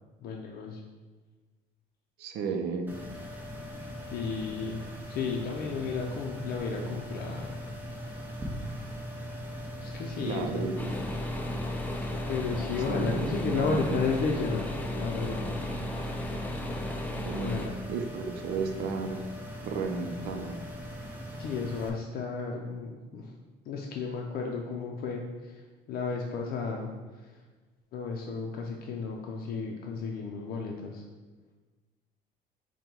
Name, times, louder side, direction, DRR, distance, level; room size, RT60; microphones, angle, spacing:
voice 1, 0.2-0.8 4.1-4.8 5.1-7.6 9.8-10.7 12.3-14.6 14.9-15.5 17.3-17.8 21.4-23.3 23.7-26.9 27.2-27.4 27.9-31.0, left 5 dB, 60° left, 0 dB, 0.5 m, -33 dB
voice 2, 2.2-2.9 10.3-11.2 12.9-14.0 17.2-17.6 17.9-19.2 19.6-20.6, right 4 dB, 75° right, 6 dB, 0.5 m, -33 dB
sound 1, 2.9-21.9, equal, 10° right, 0.8 m, -40 dB
sound 2, 10.8-17.7, left 1 dB, 10° left, 0.4 m, -35 dB
5.2 x 2.2 x 4.4 m, 1.3 s
cardioid pair, 110°, 17 cm